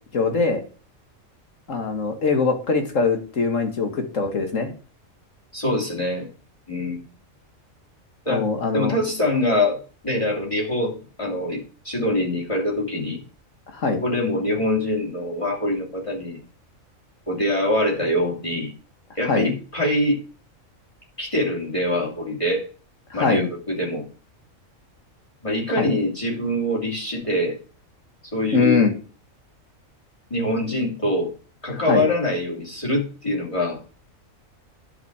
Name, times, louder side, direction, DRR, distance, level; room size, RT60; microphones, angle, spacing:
voice 1, 0.1-0.6 1.7-4.7 8.3-8.9 13.7-14.0 19.3-19.5 23.1-23.5 25.8-25.9 28.5-28.9 31.9-32.1, left 4 dB, 70° left, 5 dB, 2.1 m, -22 dB
voice 2, 5.5-6.3 6.7-7.0 8.2-8.4 8.7-13.2 13.9-16.4 17.3-18.7 19.1-20.2 21.2-22.7 23.1-24.0 25.4-27.6 28.3-28.8 30.3-31.3 31.6-33.8, left 1 dB, 25° left, -1 dB, 3.1 m, -24 dB
10.5 x 7.2 x 4.9 m, 0.38 s
omnidirectional pair, 1.4 m